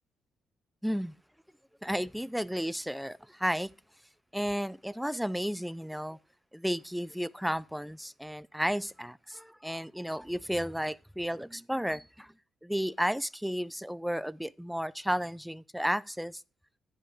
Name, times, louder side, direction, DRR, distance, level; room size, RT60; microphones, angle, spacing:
voice 1, 0.8-1.1 1.8-3.7 4.3-6.2 6.5-12.3 12.6-16.4, equal, ahead, 0.3 m, -33 dB
9.9 x 5.5 x 4.8 m
cardioid pair, 90°, 0 cm